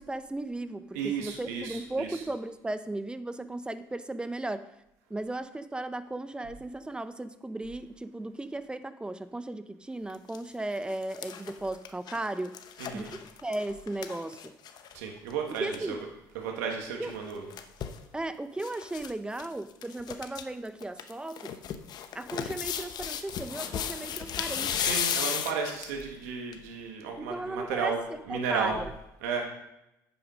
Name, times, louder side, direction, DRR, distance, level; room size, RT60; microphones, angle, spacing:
voice 1, 0.0-4.7 5.1-12.6 12.9-14.5 15.6-16.0 17.0-17.1 18.1-21.6 22.1-24.7 27.2-28.9, right 2 dB, 10° right, 12 dB, 0.8 m, -36 dB
voice 2, 0.9-2.2 12.8-13.1 14.9-16.0 16.3-17.4 24.8-28.0 28.2-28.8 29.2-29.4, right 6 dB, 90° right, 1 dB, 1.7 m, -33 dB
sound 1, 10.1-10.4 10.8-15.0 15.3-15.4 15.6-15.8 17.1-18.0 18.6-19.1 19.4-19.5 19.8-20.4 20.8-26.0 26.5-26.6, left 8 dB, 55° left, 0.9 m, -35 dB
9.1 x 7.0 x 5.1 m, 0.87 s
supercardioid pair, 80°, 8 cm